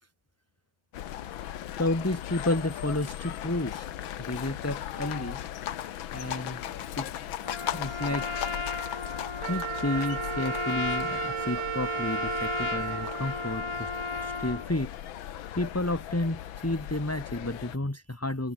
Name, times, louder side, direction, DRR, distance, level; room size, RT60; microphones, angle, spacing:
sound 1, 0.9-17.8, left 11 dB, 75° left, 1.8 m, -38 dB
voice 1, 1.8-3.9 4.2-5.4 6.1-6.6 6.9-7.3 7.7-8.3 9.5-13.9 14.2-14.9 15.5-18.5, left 1 dB, 10° left, 1.4 m, -31 dB
Trumpet, 7.4-14.7, left 3 dB, 35° left, 0.4 m, -35 dB
Wind instrument woodwind instrument, 9.4-14.2, right 14 dB, 70° right, 1.4 m, -35 dB
omnidirectional pair, 2.2 m